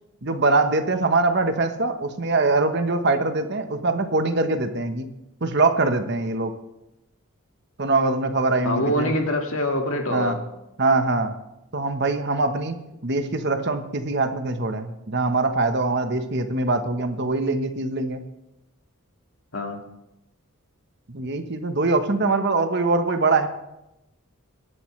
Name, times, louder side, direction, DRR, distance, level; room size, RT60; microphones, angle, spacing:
voice 1, 0.2-5.1 5.4-6.5 7.8-9.1 10.1-10.4 10.8-11.3 11.7-18.2 21.1-23.5, right 3 dB, 50° right, 7 dB, 1.2 m, -23 dB
voice 2, 8.6-10.4 19.5-19.8, left 1 dB, 65° left, 3 dB, 2.0 m, -24 dB
22.5 x 11.0 x 3.3 m, 0.89 s
head